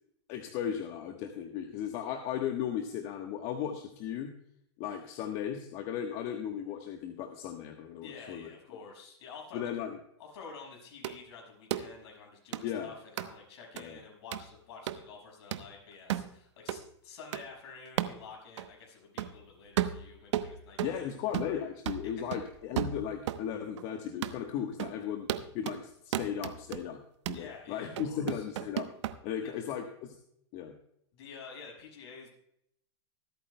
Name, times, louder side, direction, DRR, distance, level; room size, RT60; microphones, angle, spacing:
voice 1, 0.3-4.3 4.8-8.5 9.5-10.0 12.6-12.9 13.7-14.0 20.8-25.3 25.5-28.9 29.2-30.2 30.5-30.7, left 9 dB, 45° left, 4 dB, 1.2 m, -36 dB
voice 2, 8.0-9.7 10.2-21.1 27.3-28.5 29.4-29.5 31.1-32.3, left 5 dB, 65° left, 0 dB, 5.8 m, -49 dB
sound 1, 11.0-11.2 11.7-11.9 12.5-12.6 13.2-13.3 13.8-13.9 14.3-14.5 14.9-15.0 15.5-15.7 16.1-16.3 16.7-16.8 17.3-17.4 18.0-18.2 18.6-18.7 19.2-19.4 19.8-21.0 21.3-21.6 21.9-23.5 23.8-23.9 24.2-24.4 24.8-25.0 25.3-25.8 26.1-26.8 27.3-27.5 28.0-29.2, right 11 dB, 75° right, 0.9 m, -34 dB
25.0 x 8.9 x 2.2 m, 0.74 s
supercardioid pair, 140°, 15 cm